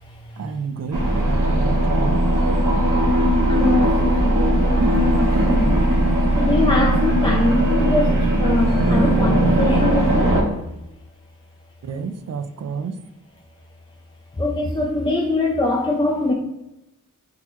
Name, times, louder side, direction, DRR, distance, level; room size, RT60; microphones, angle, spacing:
voice 1, 0.4-2.2 11.8-13.0, right 5 dB, 50° right, 0.4 m, -30 dB
sound 1, 0.9-10.4, right 1 dB, 65° right, 1.0 m, -18 dB
voice 2, 3.5-5.9 6.4-10.4 14.4-16.3, left 2 dB, 15° left, 0.4 m, -23 dB
3.7 x 2.9 x 3.0 m
cardioid pair, 45°, 34 cm